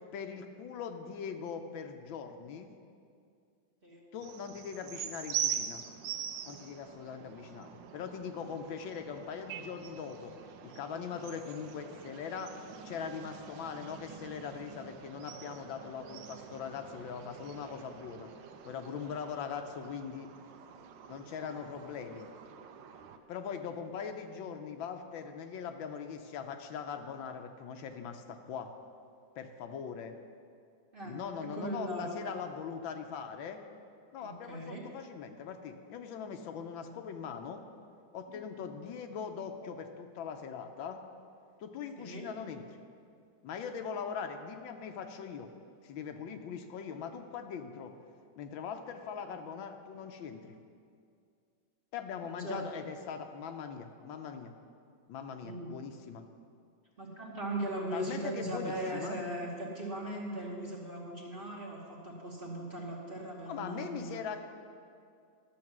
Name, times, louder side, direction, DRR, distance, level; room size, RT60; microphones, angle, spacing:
voice 1, 0.1-2.7 4.1-5.8 6.4-10.3 10.6-12.5 12.8-18.3 18.6-20.3 21.1-22.3 23.3-28.7 29.4-30.2 31.0-33.6 34.1-37.6 38.1-41.0 41.6-42.6 43.4-45.5 45.8-47.9 48.4-50.6 51.9-54.5 55.1-56.3 57.9-59.2 63.5-64.4, left 6 dB, 85° left, 6 dB, 1.5 m, -41 dB
sound 1, 4.2-23.2, right 9 dB, 75° right, 1.2 m, -44 dB
voice 2, 30.9-32.1 34.2-34.8 42.0-42.3 52.3-52.6 55.4-55.7 57.0-64.2, right 1 dB, 30° right, -3 dB, 1.3 m, -39 dB
11.5 x 7.3 x 6.0 m, 2.4 s
omnidirectional pair, 2.1 m